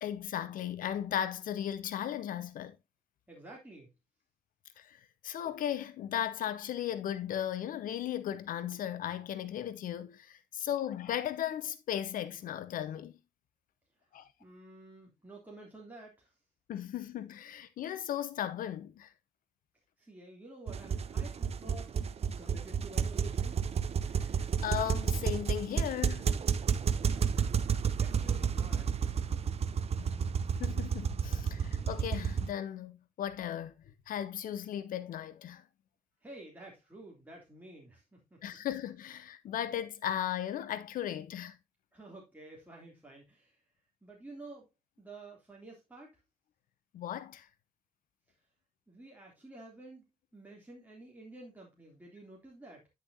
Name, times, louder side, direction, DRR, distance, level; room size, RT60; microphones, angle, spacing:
voice 1, 0.0-2.8 4.8-13.1 14.1-14.3 16.7-19.1 24.2-24.3 24.6-26.3 30.0-30.2 30.6-33.8 34.1-35.6 38.4-41.6 46.9-47.5, left 10 dB, 55° left, 0.7 m, -36 dB
voice 2, 3.3-3.9 14.4-16.3 20.0-21.9 22.4-23.6 28.0-29.2 36.2-38.4 41.9-43.6 44.0-44.7 45.0-46.2 48.9-50.1 50.3-52.9, right 2 dB, 10° right, 3.1 m, -51 dB
sound 1, 20.7-32.5, right 6 dB, 35° right, 0.6 m, -31 dB
9.9 x 6.5 x 2.8 m
figure-of-eight pair, 40°, 17 cm